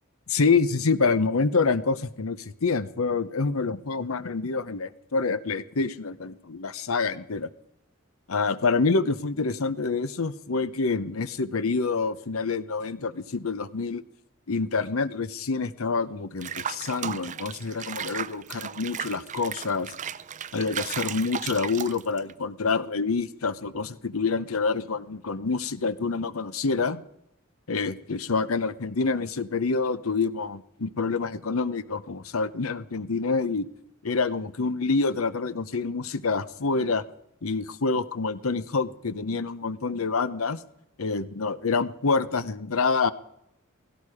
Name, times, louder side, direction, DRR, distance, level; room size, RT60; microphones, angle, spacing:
voice 1, 0.3-7.5 8.3-14.0 14.5-19.9 20.5-27.0 27.7-33.7 34.0-37.0 37.4-40.6 41.0-43.1, left 4 dB, 80° left, 15 dB, 0.8 m, -27 dB
Water / Bathtub (filling or washing), 16.4-22.3, right 8 dB, 35° right, 0.5 m, -35 dB
17.0 x 16.5 x 4.9 m, 0.79 s
head